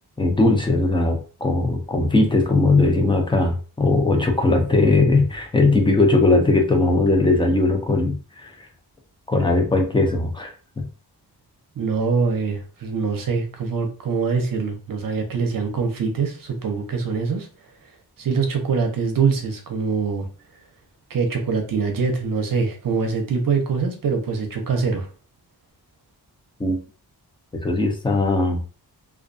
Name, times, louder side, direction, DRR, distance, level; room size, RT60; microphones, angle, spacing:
voice 1, 0.2-8.7 9.3-10.9 26.6-26.8 27.6-28.7, left 2 dB, 15° left, 3 dB, 0.4 m, -19 dB
voice 2, 11.8-17.5 18.2-20.3 21.1-25.1, right 5 dB, 60° right, 4 dB, 0.6 m, -23 dB
2.4 x 2.2 x 2.5 m, 0.37 s
wide cardioid pair, 155°, 39 cm